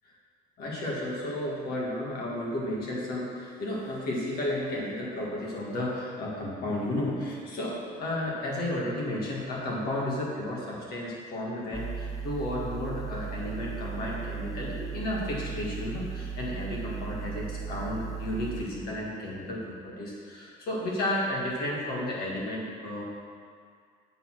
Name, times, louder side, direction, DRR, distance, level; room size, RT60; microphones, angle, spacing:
voice 1, 0.6-23.0, left 1 dB, 65° left, -4 dB, 1.9 m, -33 dB
sound 1, 11.7-18.7, right 6 dB, 20° right, 0.4 m, -37 dB
6.6 x 4.4 x 6.1 m, 2.1 s
cardioid pair, 110°, 17 cm